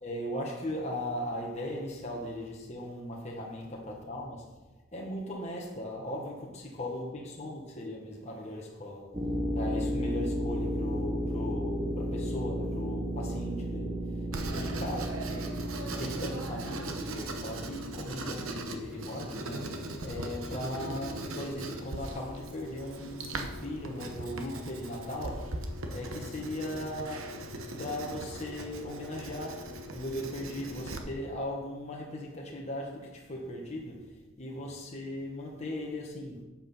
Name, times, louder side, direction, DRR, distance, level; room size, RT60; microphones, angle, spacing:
voice 1, 0.0-4.6 4.9-9.2 9.5-14.2 14.5-15.3 16.0-19.8 20.0-27.5 27.8-36.4, left 1 dB, 30° left, 1.2 m, -38 dB
sound 1, 9.1-18.6, equal, 25° right, 0.9 m, -34 dB
Writing, 14.3-31.0, right 1 dB, 85° right, 1.1 m, -39 dB
8.2 x 7.3 x 5.5 m
head